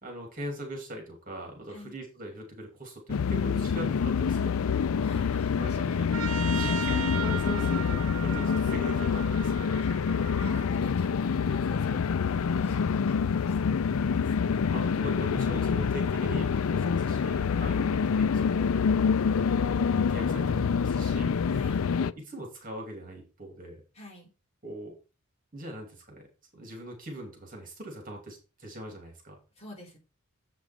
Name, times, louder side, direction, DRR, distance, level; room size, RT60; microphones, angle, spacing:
voice 1, 0.0-4.9 5.6-6.1 6.4-9.7 14.2-18.7 19.2-21.4 22.0-23.8 24.6-25.0 25.5-26.3 26.5-29.4, right 1 dB, 40° right, 2 dB, 2.9 m, -41 dB
sound 1, 3.1-22.1, left 6 dB, 90° left, 0.4 m, -26 dB
voice 2, 5.0-6.2 9.8-9.9 10.4-13.7 21.5-21.9 23.9-24.3 29.6-30.0, left 1 dB, 30° left, -1 dB, 4.1 m, -48 dB
Trumpet, 6.1-10.7, right 8 dB, 90° right, 0.7 m, -37 dB
7.7 x 6.1 x 4.5 m, 0.30 s
head